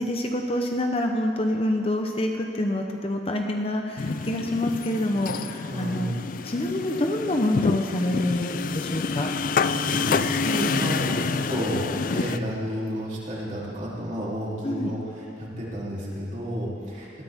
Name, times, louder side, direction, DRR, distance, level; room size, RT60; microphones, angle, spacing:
voice 1, 0.0-6.1 6.4-9.3 14.6-14.9, left 1 dB, 30° left, 3 dB, 0.8 m, -27 dB
sound 1, 4.0-12.4, left 5 dB, 45° left, 0.4 m, -28 dB
voice 2, 5.6-6.2 9.6-17.2, equal, 40° right, -6 dB, 3.4 m, -31 dB
20.0 x 14.0 x 3.6 m, 2.5 s
head